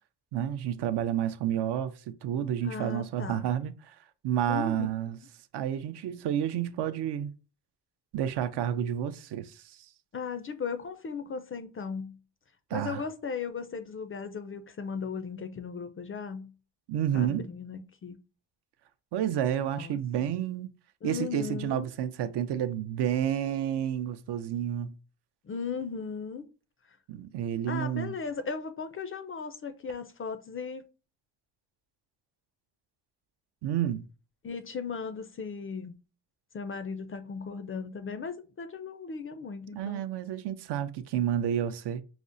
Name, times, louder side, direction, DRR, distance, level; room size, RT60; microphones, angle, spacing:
voice 1, 0.3-3.9 4.2-5.2 5.5-7.3 8.1-9.8 12.7-13.0 16.9-17.5 19.1-20.7 21.0-24.9 27.1-28.2 33.6-34.1 39.7-42.0, right 10 dB, 65° right, 0.5 m, -30 dB
voice 2, 2.6-3.4 4.5-5.1 10.1-12.2 12.7-16.5 17.1-18.2 19.8-20.3 21.0-21.9 25.4-26.5 27.7-30.8 34.4-36.0 36.5-40.1, left 5 dB, 30° left, 0.4 m, -37 dB
5.0 x 2.0 x 2.6 m
cardioid pair, 70°, 44 cm